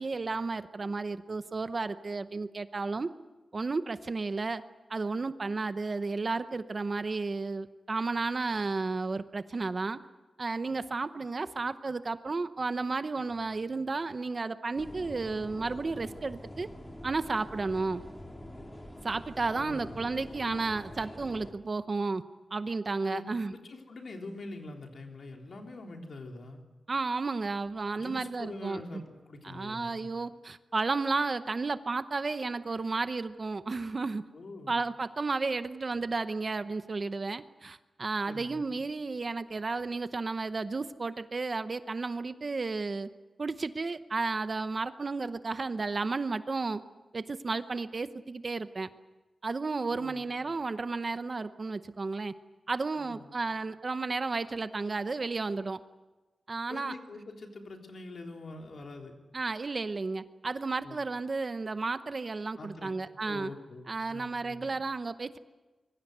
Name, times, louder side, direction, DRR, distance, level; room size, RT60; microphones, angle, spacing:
voice 1, 0.0-3.1 3.5-4.6 4.9-10.0 10.4-16.7 17.0-18.0 19.0-22.2 22.5-23.5 26.9-28.8 29.4-34.2 34.7-43.1 43.4-46.8 47.1-48.9 49.4-52.3 52.7-55.8 56.5-56.9 59.3-63.5 63.9-65.4, right 3 dB, 35° right, 11 dB, 0.8 m, -33 dB
sound 1, 14.8-21.5, left 1 dB, 15° left, 3.3 m, -45 dB
voice 2, 19.6-20.0 23.0-26.6 28.0-30.1 34.3-34.9 38.3-38.8 49.9-50.3 53.0-53.3 56.7-59.2 60.8-61.0 62.6-62.9 63.2-64.7, left 2 dB, 55° left, 2 dB, 3.6 m, -44 dB
25.5 x 23.0 x 8.0 m, 1.2 s
wide cardioid pair, 175°, 0 cm